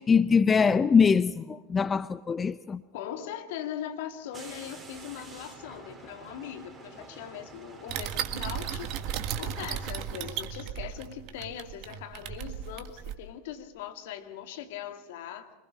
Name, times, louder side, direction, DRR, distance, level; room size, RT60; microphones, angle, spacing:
voice 1, 0.0-2.8, left 5 dB, 25° left, 16 dB, 0.6 m, -23 dB
voice 2, 2.9-15.5, left 10 dB, 65° left, 7 dB, 1.9 m, -40 dB
sound 1, 4.3-9.8, right 4 dB, 20° right, 4.0 m, -48 dB
sound 2, 7.9-13.1, right 9 dB, 50° right, 1.7 m, -35 dB
26.0 x 20.0 x 5.5 m, 1.3 s
hypercardioid pair, 85°, 0 cm